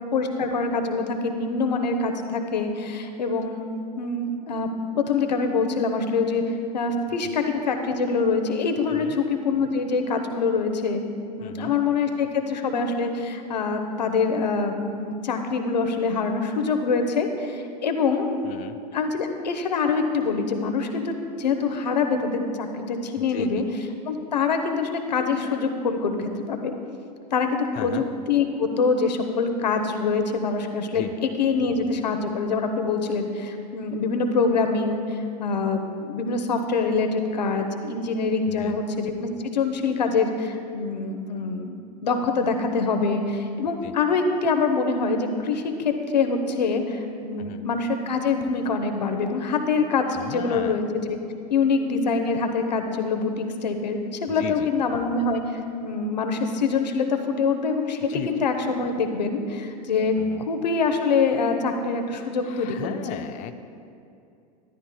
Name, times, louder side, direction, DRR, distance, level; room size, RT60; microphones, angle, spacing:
voice 1, 0.1-3.7 4.0-4.7 4.9-6.4 6.7-11.0 11.4-18.3 18.9-23.6 24.1-26.7 27.3-41.7 42.0-51.2 51.5-63.3, left 4 dB, 85° left, 5 dB, 1.0 m, -25 dB
voice 2, 11.4-11.7 18.4-18.8 23.2-23.6 27.7-28.0 30.9-31.1 38.5-38.8 43.8-43.9 47.4-47.6 50.1-50.8 54.3-54.7 58.1-58.3 60.2-60.4 62.4-63.6, left 12 dB, 35° left, 8 dB, 0.5 m, -36 dB
13.0 x 12.0 x 2.3 m, 2.5 s
hypercardioid pair, 95°, 21 cm